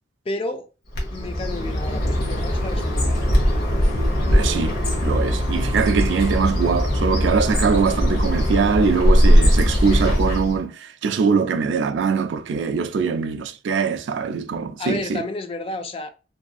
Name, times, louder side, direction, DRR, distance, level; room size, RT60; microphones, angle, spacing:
voice 1, 0.3-0.7 1.1-3.2 14.8-16.1, left 2 dB, 30° left, 0.3 m, -31 dB
Bird, 0.9-10.6, equal, 60° left, 0.8 m, -20 dB
voice 2, 4.3-4.8 5.0-15.2, right 5 dB, 80° right, 0.3 m, -22 dB
2.7 x 2.5 x 2.3 m
head